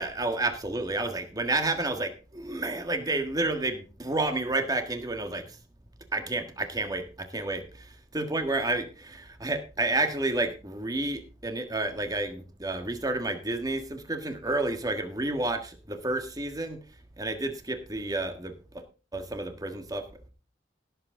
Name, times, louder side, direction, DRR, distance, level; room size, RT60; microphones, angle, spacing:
voice 1, 0.0-5.6 6.1-16.8 17.2-18.8 19.1-20.0, right 2 dB, 20° right, 7 dB, 1.6 m, -30 dB
16.5 x 7.9 x 3.8 m, 0.34 s
head